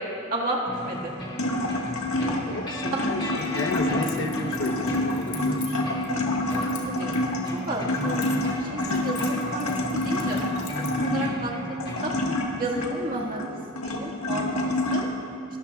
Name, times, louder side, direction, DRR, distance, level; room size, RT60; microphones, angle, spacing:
voice 1, 0.3-1.1 2.9-3.1 6.6-7.1 7.7-12.1 12.6-15.1, right 2 dB, 40° right, -3 dB, 1.8 m, -32 dB
sound 1, 0.7-12.2, equal, 20° left, 1.8 m, -35 dB
sound 2, 0.8-15.0, left 1 dB, 75° left, 1.6 m, -28 dB
voice 2, 2.4-5.9, left 2 dB, 60° left, 4 dB, 0.9 m, -33 dB
Keys jangling, 3.4-6.1 6.5-8.6 8.8-11.1, left 7 dB, 40° left, 2.0 m, -43 dB
28.5 x 13.5 x 2.3 m, 2.8 s
head